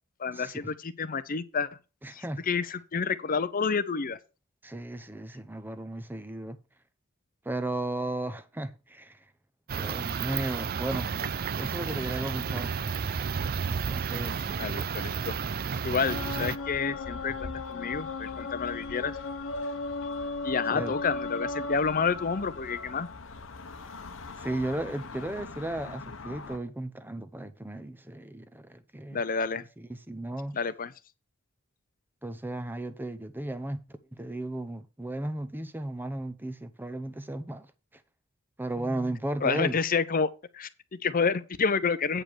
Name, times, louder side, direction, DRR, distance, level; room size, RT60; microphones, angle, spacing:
voice 1, 0.2-1.7 2.1-4.2 14.6-15.4 15.8-19.2 20.4-23.1 29.1-29.6 30.5-30.9 39.4-42.2, left 5 dB, 40° left, 0.7 m, -29 dB
voice 2, 2.0-2.4 4.6-6.6 7.4-9.2 9.7-11.1 11.6-12.8 13.9-14.5 16.2-16.3 20.7-20.9 24.4-29.2 29.6-30.6 32.2-33.8 34.1-37.7 38.6-39.8, right 1 dB, 10° right, 0.8 m, -35 dB
sound 1, 9.7-16.6, right 6 dB, 45° right, 0.4 m, -32 dB
sound 2, 16.1-26.6, left 3 dB, 65° left, 1.0 m, -37 dB
8.9 x 5.1 x 6.1 m
head